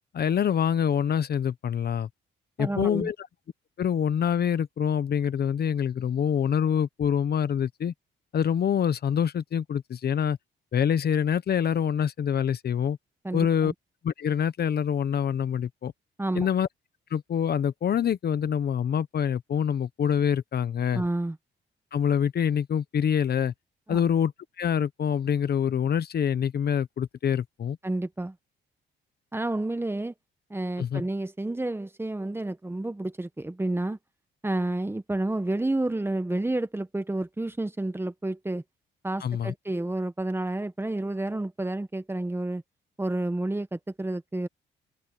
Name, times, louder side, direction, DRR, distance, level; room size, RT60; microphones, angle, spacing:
voice 1, 0.1-2.1 2.6-3.1 3.8-7.9 8.3-10.4 10.7-13.0 13.3-13.7 14.0-15.9 16.3-16.7 17.1-21.0 21.9-23.5 23.9-24.3 24.6-27.8 30.8-31.0 39.2-39.5, left 8 dB, 55° left, 1.1 m, -25 dB
voice 2, 2.6-3.1 13.2-13.7 16.2-16.5 20.9-21.4 23.9-24.0 27.8-28.3 29.3-30.1 30.5-34.0 34.4-38.6 39.0-42.6 43.0-44.5, right 2 dB, 10° right, 1.3 m, -30 dB
open air
cardioid pair, 90°, 20 cm